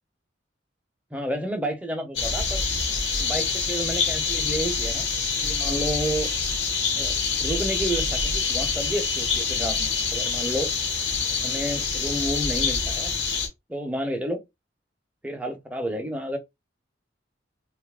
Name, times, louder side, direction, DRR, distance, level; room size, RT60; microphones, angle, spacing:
voice 1, 1.1-2.6 3.2-5.1 5.4-6.3 7.0-10.7 11.4-13.1 13.7-14.4 15.2-16.4, right 1 dB, 10° right, 0.6 m, -30 dB
sound 1, 2.2-13.5, left 5 dB, 65° left, 1.1 m, -26 dB
2.6 x 2.4 x 3.4 m
head